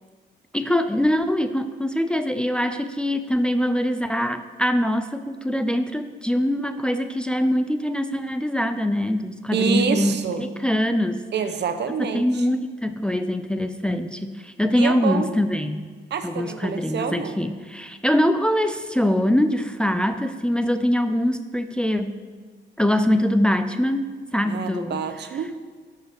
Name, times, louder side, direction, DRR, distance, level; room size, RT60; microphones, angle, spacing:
voice 1, 0.5-11.2 12.0-15.9 16.2-22.2 22.8-24.0 24.3-25.1, left 1 dB, 5° left, 8 dB, 0.6 m, -23 dB
voice 2, 9.5-10.4 11.3-12.5 14.7-15.3 16.1-17.4 24.4-25.5, right 6 dB, 60° right, 8 dB, 1.0 m, -27 dB
12.0 x 5.6 x 6.0 m, 1.4 s
cardioid pair, 90°, 20 cm